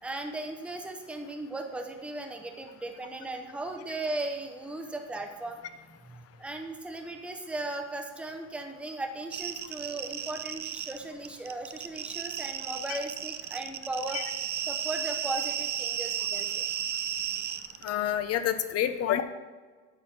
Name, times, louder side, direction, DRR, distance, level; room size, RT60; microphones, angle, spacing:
voice 1, 0.0-14.2 14.7-16.7, right 2 dB, 5° right, 4 dB, 0.7 m, -37 dB
sound 1, 9.3-11.0 11.2-17.9, right 10 dB, 30° right, 0.4 m, -34 dB
voice 2, 17.8-19.2, left 11 dB, 45° left, 11 dB, 0.7 m, -28 dB
9.1 x 4.4 x 7.2 m, 1.4 s
cardioid pair, 130°, 34 cm